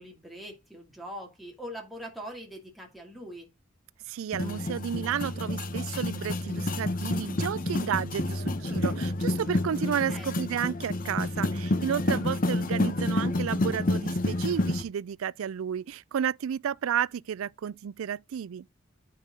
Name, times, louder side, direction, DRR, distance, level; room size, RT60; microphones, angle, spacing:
voice 1, 0.0-3.5 8.6-8.9 10.1-10.3, equal, ahead, 2.3 m, -42 dB
voice 2, 4.1-18.7, right 8 dB, 90° right, 0.4 m, -32 dB
sound 1, 4.3-14.8, left 2 dB, 40° left, 0.9 m, -29 dB
9.0 x 5.8 x 3.7 m
head